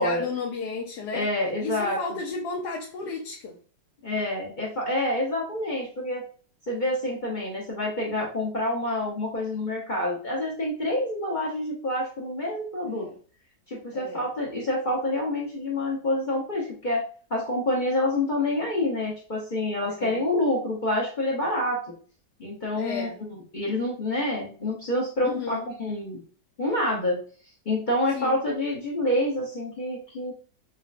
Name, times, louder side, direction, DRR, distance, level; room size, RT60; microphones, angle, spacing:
voice 1, 0.0-1.3 1.6-3.6 12.9-13.2 13.9-14.2 20.0-20.2 22.7-23.2 25.2-25.7 28.1-28.4, left 4 dB, 75° left, 1.1 m, -33 dB
voice 2, 1.1-2.2 4.0-6.2 6.7-13.1 13.7-17.0 17.3-21.8 22.4-26.2 26.6-27.2 27.7-30.3, left 1 dB, 40° left, 0.7 m, -27 dB
5.4 x 2.1 x 2.4 m
omnidirectional pair, 1.9 m